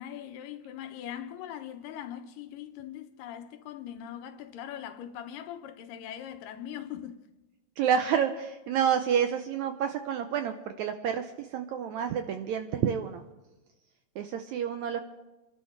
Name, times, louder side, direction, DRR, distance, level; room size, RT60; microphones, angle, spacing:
voice 1, 0.0-7.3, left 10 dB, 80° left, 2.4 m, -41 dB
voice 2, 7.8-13.2 14.2-15.0, right 8 dB, 80° right, 1.7 m, -29 dB
26.5 x 12.0 x 3.3 m
omnidirectional pair, 3.9 m